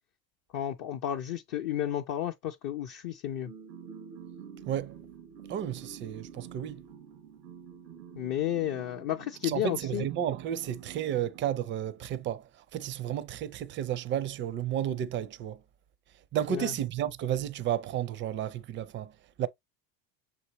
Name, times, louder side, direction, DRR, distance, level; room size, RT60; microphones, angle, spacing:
voice 1, 0.5-3.5 8.2-10.1 16.5-16.7, left 11 dB, 45° left, 0.6 m, -32 dB
sound 1, 3.5-12.2, right 7 dB, 85° right, 0.7 m, -48 dB
voice 2, 4.7-5.0 5.5-6.9 9.4-15.6 16.3-19.1 19.4-19.5, right 10 dB, 25° right, 0.4 m, -32 dB
6.5 x 2.6 x 2.9 m
hypercardioid pair, 80°, 49 cm